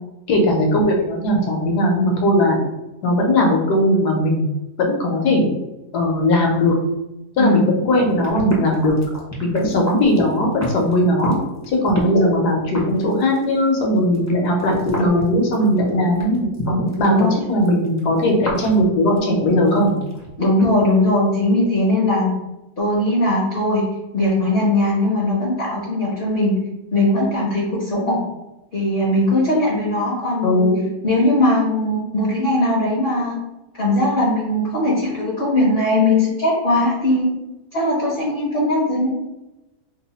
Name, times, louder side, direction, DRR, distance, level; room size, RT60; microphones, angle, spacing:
voice 1, 0.3-2.6 3.0-4.5 4.8-5.4 5.9-6.7 7.4-9.0 9.4-11.4 11.7-17.1 17.5-20.0 30.4-30.8, left 1 dB, 80° left, 0 dB, 1.3 m, -18 dB
sound 1, 7.9-12.3 12.6-17.2 17.6-20.3 20.5-20.6, left 1 dB, 25° left, 0.3 m, -28 dB
voice 2, 20.4-22.4 22.8-23.9 24.1-26.6 26.9-28.2 28.7-30.7 31.0-33.3 33.8-37.3 37.7-39.1, left 1 dB, 50° left, -4 dB, 0.7 m, -19 dB
3.1 x 2.0 x 4.0 m, 0.98 s
omnidirectional pair, 1.7 m